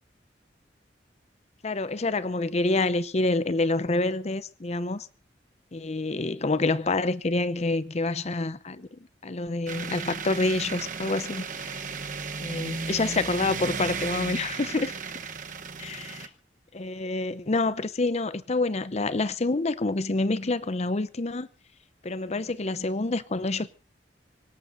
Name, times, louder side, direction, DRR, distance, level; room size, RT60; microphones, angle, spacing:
voice 1, 1.6-5.1 5.7-11.8 12.4-15.0 15.8-16.3 16.7-21.5 22.0-23.7, left 2 dB, 40° left, 0.7 m, -27 dB
sound 1, 9.7-16.3, right 5 dB, 45° right, 1.1 m, -35 dB
24.5 x 18.0 x 2.7 m
head